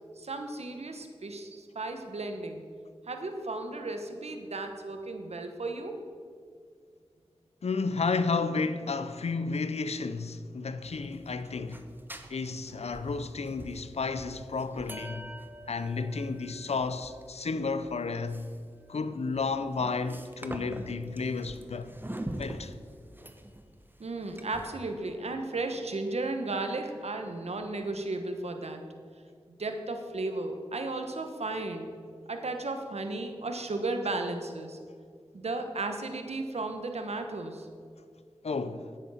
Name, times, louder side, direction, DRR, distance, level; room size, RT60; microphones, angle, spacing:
voice 1, 0.2-2.6 3.1-6.0 24.0-28.8 29.5-31.9 32.3-34.8 35.3-37.7, right 2 dB, 80° right, 1.2 m, -34 dB
voice 2, 7.6-11.9 12.3-15.3 15.7-18.5 18.9-21.9 22.3-22.7 38.4-38.9, left 4 dB, 80° left, 0.6 m, -32 dB
sound 1, 10.8-24.9, right 1 dB, 20° right, 1.1 m, -45 dB
9.9 x 9.7 x 5.7 m
cardioid pair, 40°, 11 cm